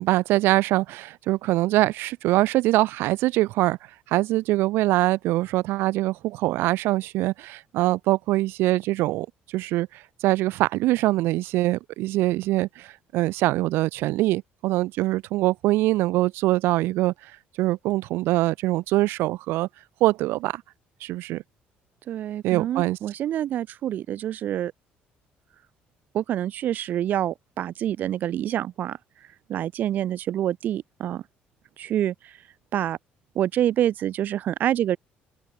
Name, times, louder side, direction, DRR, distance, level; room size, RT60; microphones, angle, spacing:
voice 1, 0.0-3.8 4.1-9.3 9.5-17.1 17.6-19.7 20.0-20.6 21.0-21.4 22.4-23.0, right 17 dB, 80° right, 1.7 m, -23 dB
voice 2, 22.1-24.7 26.1-29.0 29.5-31.2 31.8-32.1 32.7-33.0 33.4-35.0, right 11 dB, 50° right, 3.9 m, -26 dB
open air
cardioid pair, 160°, 4 cm